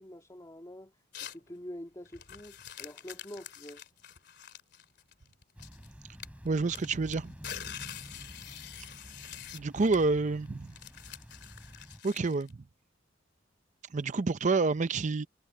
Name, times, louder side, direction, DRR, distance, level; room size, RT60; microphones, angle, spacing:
voice 1, 0.0-3.8, equal, 20° left, 2.1 m, -46 dB
sound 1, 1.1-1.5 2.1-5.9 6.2-12.5, left 9 dB, 60° left, 3.2 m, -46 dB
sound 2, 5.6-12.0, equal, 10° right, 3.2 m, -50 dB
voice 2, 6.4-7.3 9.5-10.7 12.0-12.5 13.9-15.3, right 3 dB, 40° right, 0.5 m, -28 dB
head